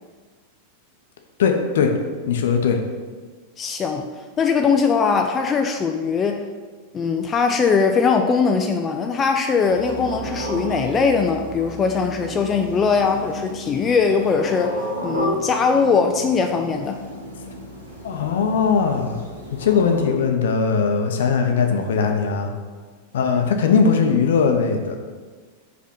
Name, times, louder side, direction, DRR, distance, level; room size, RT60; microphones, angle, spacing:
voice 1, 1.4-1.9 2.3-2.8 18.0-19.2 19.5-22.5 23.1-25.0, left 5 dB, 60° left, 4 dB, 0.7 m, -19 dB
voice 2, 3.6-4.1 4.4-6.4 6.9-17.0, left 5 dB, 20° left, 4 dB, 0.3 m, -20 dB
sound 1, 9.7-20.0, equal, 85° right, 1.2 m, -32 dB
5.1 x 3.4 x 5.5 m, 1.4 s
figure-of-eight pair, 90°, 0 cm